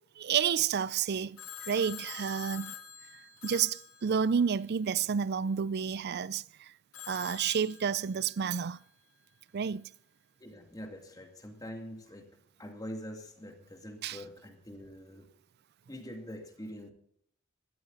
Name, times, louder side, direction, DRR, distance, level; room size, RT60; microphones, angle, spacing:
voice 1, 0.2-2.7 3.4-6.7 7.1-8.8 9.5-9.9 14.0-14.2, right 7 dB, 50° right, 0.4 m, -30 dB
Telephone, 1.4-4.7 6.9-8.5, left 10 dB, 80° left, 1.5 m, -46 dB
voice 2, 10.4-12.3 12.6-15.3 15.9-16.9, equal, 20° left, 2.2 m, -44 dB
18.0 x 13.0 x 4.0 m
head